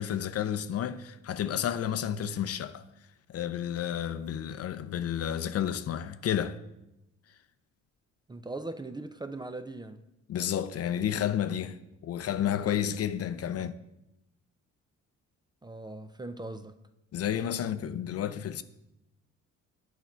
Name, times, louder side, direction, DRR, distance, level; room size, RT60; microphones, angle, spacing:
voice 1, 0.0-2.9 3.3-6.6 10.3-13.7 17.1-18.6, left 9 dB, 55° left, 0.5 m, -31 dB
voice 2, 8.3-10.0 13.5-13.7 15.6-16.8, right 2 dB, 15° right, 0.5 m, -40 dB
8.2 x 6.0 x 4.4 m
cardioid pair, 90°, 30 cm